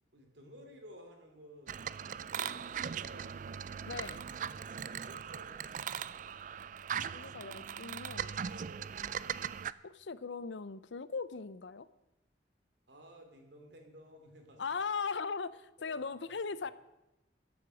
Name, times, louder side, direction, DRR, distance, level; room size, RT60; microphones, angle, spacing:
voice 1, 0.0-3.3 4.4-5.9 8.4-9.2 12.9-14.6 15.8-16.4, equal, 75° right, 3 dB, 2.8 m, -55 dB
sound 1, 1.7-9.7, right 8 dB, 45° right, 0.3 m, -39 dB
voice 2, 3.8-4.2 7.1-8.4 9.8-11.9 14.6-16.7, left 5 dB, 80° left, 16 dB, 0.6 m, -39 dB
15.0 x 7.9 x 6.3 m, 0.95 s
head